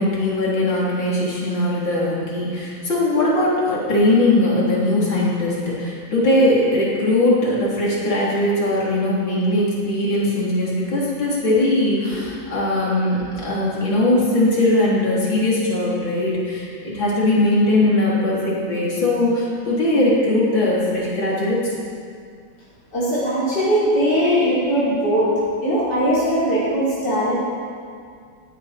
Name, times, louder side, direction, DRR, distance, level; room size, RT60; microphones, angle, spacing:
voice 1, 0.0-21.8, left 1 dB, 85° left, -6 dB, 4.1 m, -20 dB
voice 2, 22.9-25.3 25.6-27.3, equal, 60° left, -10 dB, 5.2 m, -20 dB
18.5 x 16.5 x 4.4 m, 2.2 s
omnidirectional pair, 2.0 m